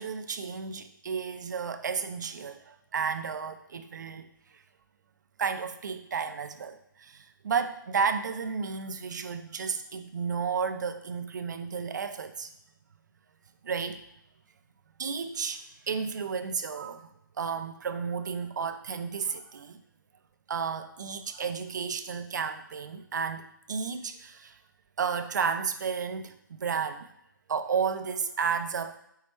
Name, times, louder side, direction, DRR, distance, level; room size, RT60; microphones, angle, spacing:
voice 1, 0.0-4.6 5.4-12.5 13.6-14.0 15.0-17.1 17.4-19.8 20.5-24.6 25.0-27.1 27.5-29.0, right 6 dB, 60° right, 9 dB, 0.4 m, -32 dB
4.6 x 2.1 x 4.1 m, 0.77 s
figure-of-eight pair, 150°, 11 cm